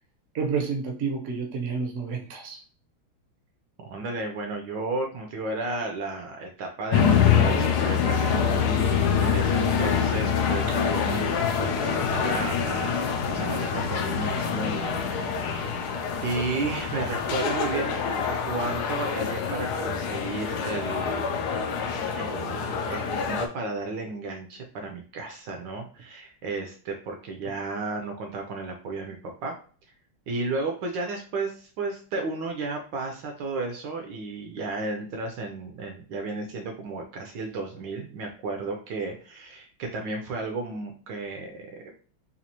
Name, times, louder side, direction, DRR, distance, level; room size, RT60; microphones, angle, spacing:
voice 1, 0.3-2.6, right 5 dB, 55° right, 2 dB, 0.8 m, -29 dB
voice 2, 3.8-15.8 16.2-18.2 18.4-21.4 22.1-29.5 30.3-42.0, right 3 dB, 70° right, 2 dB, 1.2 m, -33 dB
sound 1, 6.9-23.5, left 7 dB, 75° left, 0.9 m, -25 dB
4.1 x 2.5 x 2.8 m, 0.41 s
omnidirectional pair, 2.3 m